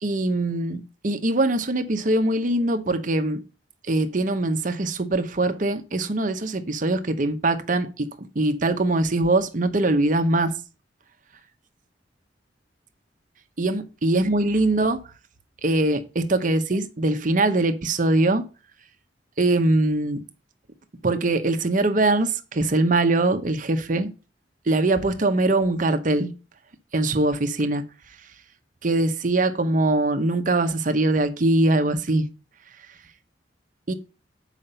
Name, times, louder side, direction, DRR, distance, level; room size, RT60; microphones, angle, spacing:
voice 1, 0.0-3.4 3.9-8.1 8.3-10.6 13.6-15.0 15.6-18.5 19.4-20.2 21.0-24.1 24.7-26.3 26.9-27.8 28.8-32.3 33.9-34.0, right 2 dB, 45° right, 0.8 m, -22 dB
7.3 x 5.0 x 5.5 m
head